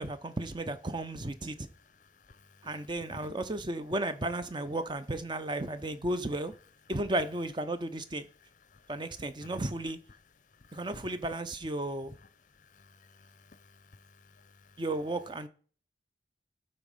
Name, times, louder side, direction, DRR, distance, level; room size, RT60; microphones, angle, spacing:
voice 1, 0.0-1.7 2.6-6.5 6.9-8.3 8.9-10.0 10.7-12.2 14.8-15.5, right 1 dB, 25° right, 0.7 m, -34 dB
voice 2, 1.9-2.8 3.1-3.3 8.7-8.9 9.4-9.5 10.5-10.9 12.5-14.8, left 3 dB, 40° left, 0.6 m, -56 dB
12.0 x 4.2 x 5.3 m
head